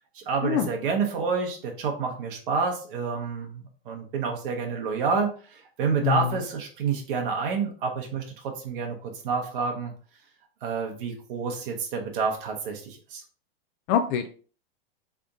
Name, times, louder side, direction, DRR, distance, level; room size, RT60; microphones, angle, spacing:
voice 1, 0.1-9.9 10.6-13.2, right 5 dB, 60° right, 2 dB, 1.2 m, -29 dB
voice 2, 6.0-6.4 13.9-14.3, left 9 dB, 30° left, 7 dB, 0.4 m, -24 dB
3.6 x 3.4 x 2.6 m, 0.40 s
hypercardioid pair, 115°, 30 cm